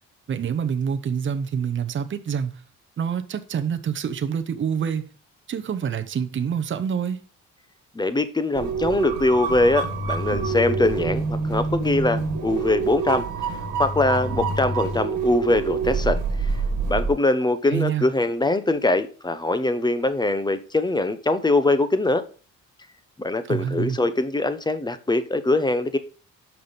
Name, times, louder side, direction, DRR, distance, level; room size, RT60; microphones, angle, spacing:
voice 1, 0.3-2.6 3.0-5.1 5.5-7.2 17.6-18.0 23.5-24.0, right 7 dB, 40° right, 0.8 m, -26 dB
voice 2, 7.9-16.5 16.9-22.2 23.2-26.0, left 2 dB, 15° left, 0.8 m, -22 dB
sound 1, 8.5-17.1, right 4 dB, 85° right, 1.8 m, -26 dB
5.9 x 5.5 x 5.2 m
cardioid pair, 90°, 30 cm